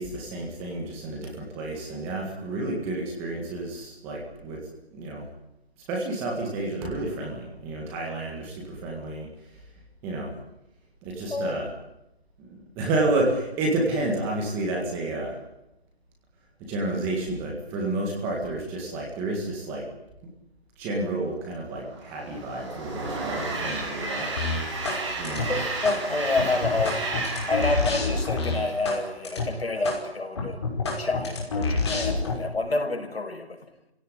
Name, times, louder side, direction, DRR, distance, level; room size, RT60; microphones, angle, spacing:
voice 1, 0.0-4.6 4.9-5.2 5.9-9.3 10.0-10.3 11.0-11.7 12.4-15.4 16.7-19.9 20.8-24.3 25.2-25.6, right 2 dB, 5° right, 0 dB, 1.8 m, -30 dB
voice 2, 11.3-11.8 25.5-27.0 27.5-30.6 31.0-33.6, left 3 dB, 75° left, 5 dB, 5.9 m, -28 dB
Train, 21.8-29.3, right 3 dB, 30° right, 6.5 m, -33 dB
sound 1, 24.4-25.0 25.2-26.0 26.4-29.0 29.2-29.4 29.8-30.0 30.4-32.3, left 3 dB, 25° left, 5.5 m, -27 dB
27.0 x 17.0 x 10.0 m, 0.88 s
figure-of-eight pair, 170°, 31 cm